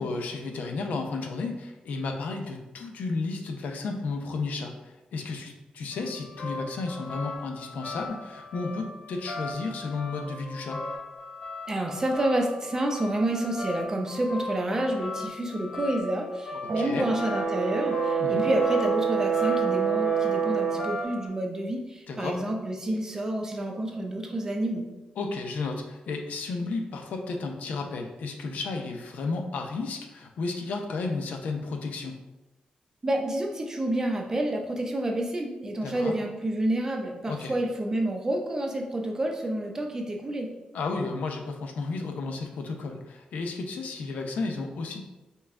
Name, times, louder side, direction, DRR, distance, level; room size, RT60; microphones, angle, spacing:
voice 1, 0.0-10.8 16.8-17.1 18.2-18.4 22.1-22.4 25.2-32.2 35.8-36.1 37.3-37.5 40.7-45.0, left 3 dB, 80° left, 4 dB, 0.6 m, -33 dB
sound 1, 5.9-21.3, left 2 dB, 45° left, 0.8 m, -38 dB
voice 2, 11.7-24.9 33.0-40.5, right 1 dB, 20° right, 1 dB, 0.6 m, -29 dB
Brass instrument, 16.7-20.9, right 7 dB, 65° right, 0.6 m, -27 dB
5.5 x 2.2 x 3.6 m, 1.1 s
wide cardioid pair, 145°, 3 cm